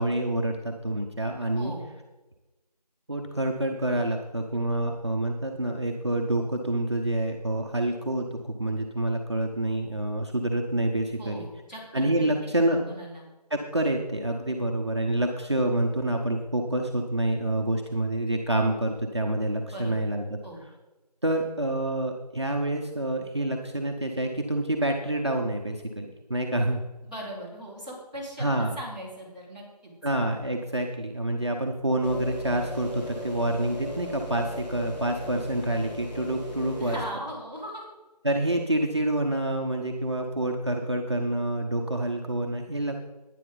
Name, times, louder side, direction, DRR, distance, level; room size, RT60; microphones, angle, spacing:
voice 1, 0.0-1.7 3.1-11.5 11.9-12.8 13.5-20.4 21.2-26.8 28.4-28.7 30.0-37.0 38.2-43.0, right 1 dB, 40° right, 1 dB, 0.9 m, -27 dB
voice 2, 1.5-1.9 11.2-12.3 12.6-13.3 19.7-20.0 20.4-20.6 27.1-29.9 36.8-37.8, equal, 10° left, -11 dB, 2.8 m, -39 dB
sound 1, 32.0-37.1, left 1 dB, 90° left, 3.0 m, -37 dB
12.0 x 10.0 x 4.0 m, 1.1 s
figure-of-eight pair, 175°, 21 cm